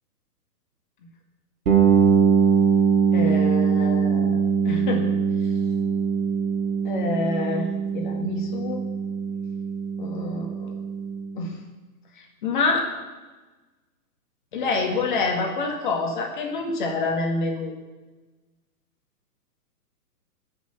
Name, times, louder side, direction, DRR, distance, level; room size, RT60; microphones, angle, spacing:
sound 1, 1.7-11.4, right 6 dB, 60° right, 3.0 m, -22 dB
voice 1, 3.1-5.1 6.8-8.8 10.0-10.8 11.4-11.5 12.2-12.9 14.5-17.7, left 3 dB, 30° left, 2 dB, 1.9 m, -27 dB
18.0 x 6.4 x 7.0 m, 1.2 s
hypercardioid pair, 175°, 48 cm